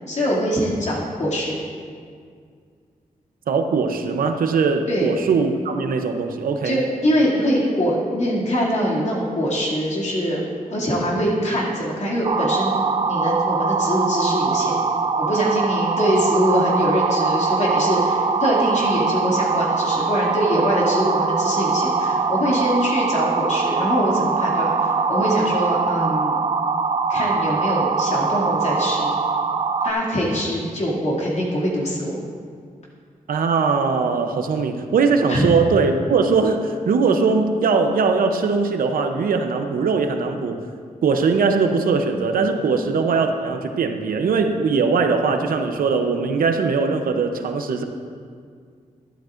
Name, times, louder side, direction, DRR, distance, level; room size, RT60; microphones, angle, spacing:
voice 1, 0.1-1.6 4.9-5.1 6.6-10.4 10.7-14.8 15.2-26.4 27.1-29.1 29.8-32.2 35.3-35.4 42.6-42.8, equal, 55° left, -5 dB, 2.4 m, -23 dB
voice 2, 3.5-6.8 33.3-40.6 41.0-47.8, right 4 dB, 90° right, 5 dB, 0.7 m, -20 dB
sound 1, 12.2-29.9, right 4 dB, 40° right, 0.4 m, -22 dB
12.0 x 11.5 x 2.5 m, 2.1 s
wide cardioid pair, 115°, 14 cm